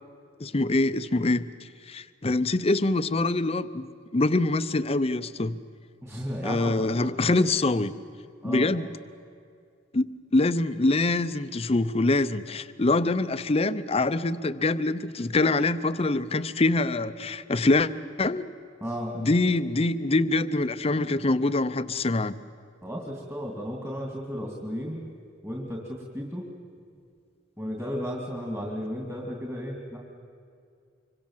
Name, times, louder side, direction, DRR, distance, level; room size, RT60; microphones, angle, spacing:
voice 1, 0.4-1.5 1.9-5.6 6.4-8.0 8.4-8.9 9.9-17.9 18.2-18.5 19.1-22.4, left 2 dB, 35° left, 13 dB, 0.7 m, -24 dB
voice 2, 6.0-7.3 8.4-8.7 18.8-19.1 22.8-25.0 25.4-26.5 27.6-30.0, equal, 15° right, -1 dB, 2.6 m, -34 dB
26.0 x 24.5 x 7.4 m, 2.3 s
head